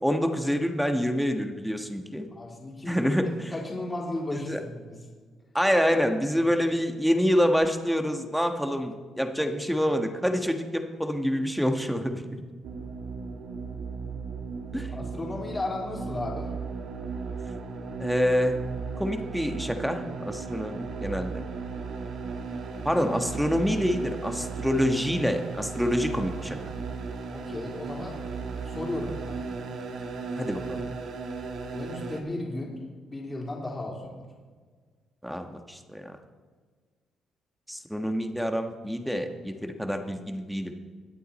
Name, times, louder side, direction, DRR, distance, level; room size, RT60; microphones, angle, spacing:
voice 1, 0.0-2.3 2.8-3.5 4.3-4.6 5.5-12.4 14.7-14.9 18.0-18.6 19.0-21.5 22.8-26.6 30.4-30.8 35.2-36.1 37.7-40.7, equal, ahead, 5 dB, 1.4 m, -27 dB
voice 2, 2.3-3.1 3.5-5.0 14.9-16.5 24.3-24.5 27.3-28.2 28.6-29.5 31.7-32.8 33.1-34.2, left 2 dB, 25° left, -3 dB, 3.5 m, -35 dB
sound 1, 12.6-32.2, right 4 dB, 70° right, 1.7 m, -36 dB
22.5 x 8.3 x 4.3 m, 1.5 s
cardioid pair, 90°, 0 cm